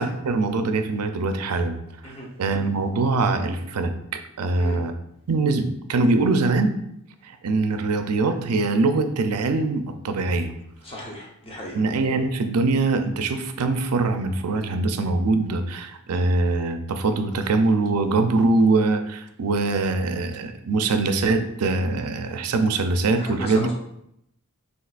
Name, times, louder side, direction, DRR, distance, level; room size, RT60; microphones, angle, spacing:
voice 1, 0.0-1.8 2.4-4.9 5.3-6.8 7.2-10.5 11.7-23.7, right 3 dB, 85° right, 8 dB, 0.5 m, -23 dB
voice 2, 10.8-11.8 23.2-23.7, equal, 25° left, -2 dB, 0.9 m, -36 dB
6.2 x 2.9 x 2.4 m, 0.77 s
head